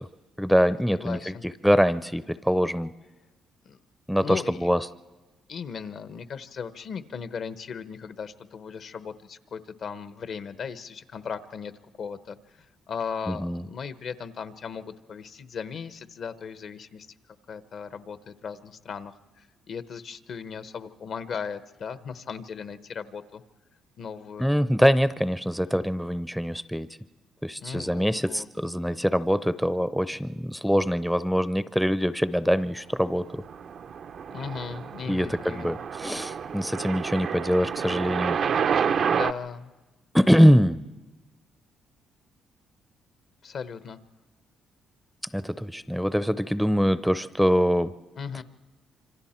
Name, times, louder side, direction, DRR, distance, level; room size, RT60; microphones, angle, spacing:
voice 1, 0.4-1.3 1.6-2.9 4.1-4.8 13.3-13.7 24.4-26.9 27.4-33.2 35.1-38.4 40.1-40.8 45.3-47.9, equal, ahead, 15 dB, 0.6 m, -23 dB
voice 2, 1.0-1.5 3.6-3.8 4.2-4.7 5.5-17.1 17.5-23.4 24.0-24.5 27.6-28.5 34.3-35.8 39.1-39.7 43.4-44.0 48.2-48.4, left 6 dB, 60° left, 13 dB, 1.0 m, -37 dB
sound 1, 33.2-39.3, right 7 dB, 60° right, 0.6 m, -29 dB
26.5 x 25.0 x 4.4 m, 1.2 s
cardioid pair, 90°, 0 cm